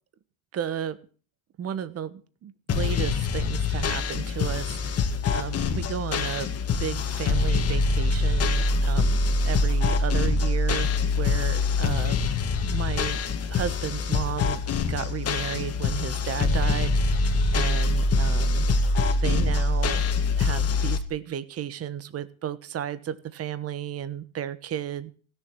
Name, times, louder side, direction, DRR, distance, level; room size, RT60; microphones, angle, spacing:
voice 1, 0.5-1.0 1.6-6.5 6.8-9.2 9.4-12.2 12.6-13.2 13.5-14.6 14.9-18.9 19.2-20.0 20.4-25.1, right 10 dB, 35° right, 14 dB, 1.3 m, -33 dB
sound 1, 2.7-21.0, left 3 dB, 35° left, 2.3 m, -24 dB
16.5 x 7.3 x 8.6 m, 0.40 s
supercardioid pair, 120°, 43 cm